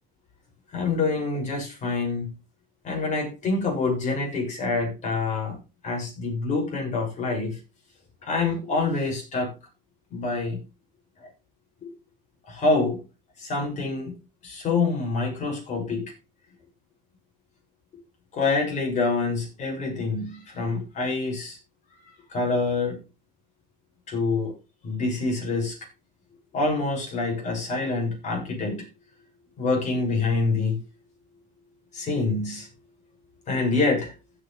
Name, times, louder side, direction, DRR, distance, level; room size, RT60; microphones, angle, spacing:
voice 1, 0.7-2.3 2.8-5.6 5.8-7.6 8.2-9.5 10.1-10.6 11.2-11.3 11.8-11.9 12.5-13.0 13.4-14.2 14.4-16.1 18.3-21.6 22.3-23.0 24.1-24.5 24.8-25.8 26.5-28.9 29.6-30.8 31.9-32.7 33.5-34.1, left 3 dB, 50° left, 7.2 m, -26 dB
16.0 x 7.7 x 3.5 m
cardioid pair, 120°, 16 cm